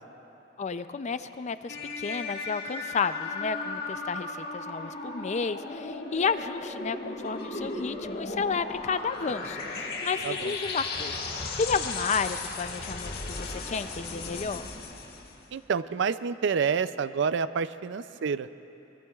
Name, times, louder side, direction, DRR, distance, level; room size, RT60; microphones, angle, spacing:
voice 1, 0.6-14.6, left 5 dB, 40° left, 11 dB, 0.4 m, -32 dB
sound 1, 1.7-15.4, left 3 dB, 55° left, 1.7 m, -36 dB
voice 2, 15.5-18.5, right 6 dB, 70° right, 14 dB, 0.4 m, -28 dB
24.0 x 21.5 x 2.4 m, 3.0 s
head